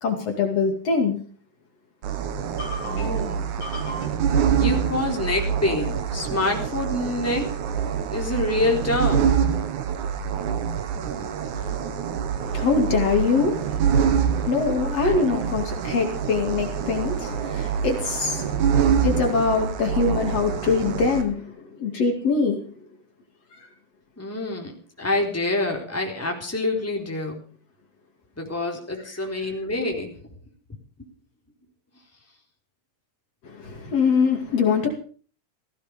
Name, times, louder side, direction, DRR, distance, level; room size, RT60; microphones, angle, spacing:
voice 1, 0.0-1.2 2.6-3.2 3.6-4.1 11.5-11.8 12.4-22.6 23.5-23.6 33.4-34.9, left 4 dB, 60° left, 3 dB, 3.5 m, -24 dB
sound 1, 2.0-21.2, right 7 dB, 85° right, 3.0 m, -25 dB
voice 2, 2.8-3.6 4.5-7.5 8.1-9.3 15.0-15.1 24.2-27.4 28.4-30.2, left 2 dB, 5° left, 1 dB, 3.7 m, -26 dB
17.0 x 15.5 x 5.2 m, 0.42 s
omnidirectional pair, 3.4 m